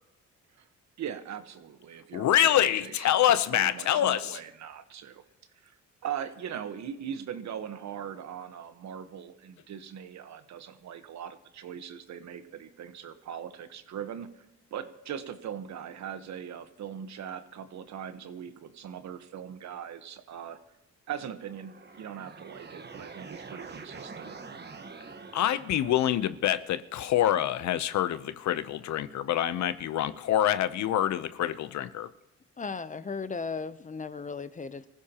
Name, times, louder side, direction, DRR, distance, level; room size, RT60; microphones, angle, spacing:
voice 1, 1.0-5.2 5.6-14.5 14.7-20.6 21.1-24.4, right 8 dB, 65° right, 1.2 m, -40 dB
voice 2, 2.1-4.4 25.3-32.1, left 11 dB, 65° left, 0.8 m, -26 dB
sound 1, 21.4-26.4, right 4 dB, 35° right, 1.3 m, -45 dB
voice 3, 32.6-34.9, left 4 dB, 25° left, 0.6 m, -36 dB
24.5 x 15.5 x 2.9 m
cardioid pair, 90°, 30 cm